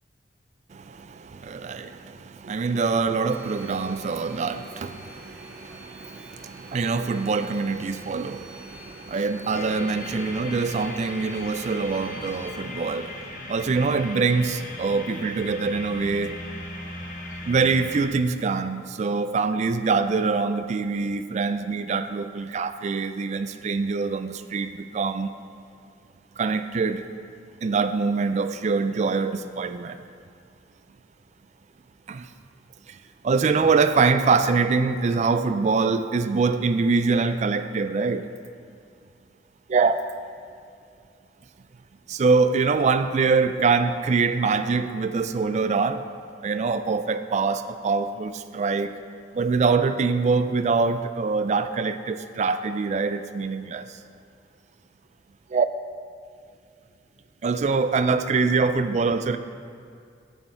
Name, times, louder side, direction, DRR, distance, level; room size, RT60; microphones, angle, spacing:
voice 1, 0.7-16.4 17.5-25.3 26.4-27.0 27.6-30.0 32.1-32.3 32.9-33.0 33.2-38.3 39.7-40.0 42.1-46.0 46.4-49.0 49.3-54.0 55.5-55.7 57.4-59.4, right 4 dB, 40° right, 0.3 m, -24 dB
sound 1, 3.3-12.5, right 1 dB, 10° right, 0.9 m, -46 dB
sound 2, 9.5-18.0, left 2 dB, 45° left, 0.9 m, -38 dB
7.8 x 7.2 x 4.4 m
head